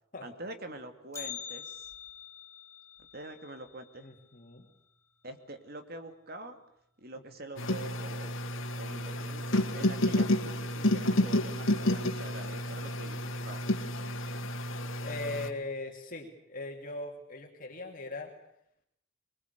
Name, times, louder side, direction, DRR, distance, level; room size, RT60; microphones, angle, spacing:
voice 1, 0.2-1.9 3.1-4.1 5.2-6.6 7.0-8.4 8.7-13.6, right 2 dB, 50° right, 7 dB, 2.7 m, -45 dB
Bell, 1.1-5.2 5.5-5.6 6.1-6.2 7.0-7.1 7.8-8.1 8.5-8.6, left 9 dB, 15° left, 5.0 m, -46 dB
voice 2, 4.0-4.7 15.0-18.3, left 2 dB, 45° left, 2 dB, 2.7 m, -39 dB
sound 1, 7.6-15.5, left 1 dB, 75° left, 2.2 m, -30 dB
24.0 x 22.0 x 8.4 m, 0.73 s
head